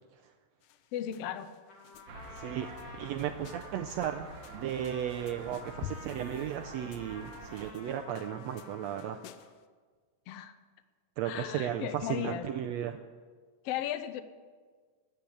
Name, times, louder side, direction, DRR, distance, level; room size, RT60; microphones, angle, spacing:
sound 1, 0.6-9.7, left 11 dB, 90° left, 2.2 m, -51 dB
voice 1, 0.9-1.5 10.3-10.5 11.2-12.5 13.6-14.2, left 10 dB, 70° left, 11 dB, 1.5 m, -35 dB
Trumpet, 1.7-9.5, left 3 dB, 50° left, 3.0 m, -51 dB
sound 2, 2.1-7.7, right 4 dB, 60° right, 1.9 m, -48 dB
voice 2, 2.4-2.7 3.0-4.3 4.5-9.2 11.2-13.0, right 10 dB, 80° right, 6 dB, 1.6 m, -35 dB
13.0 x 9.3 x 8.7 m, 1.5 s
omnidirectional pair, 3.5 m